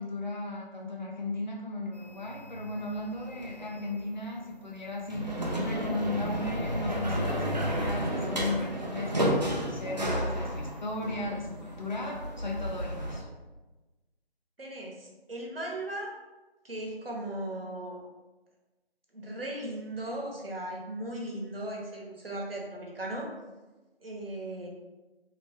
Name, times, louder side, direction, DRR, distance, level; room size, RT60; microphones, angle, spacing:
voice 1, 0.0-13.3, left 2 dB, 45° left, -1 dB, 0.8 m, -36 dB
sound 1, 1.9-4.0 5.0-13.2, equal, 45° right, 0.5 m, -32 dB
voice 2, 14.6-16.1 16.6-18.0 19.1-23.3 24.0-24.7, right 1 dB, 65° right, -2 dB, 1.1 m, -37 dB
3.2 x 2.9 x 3.3 m, 1.1 s
figure-of-eight pair, 165°, 31 cm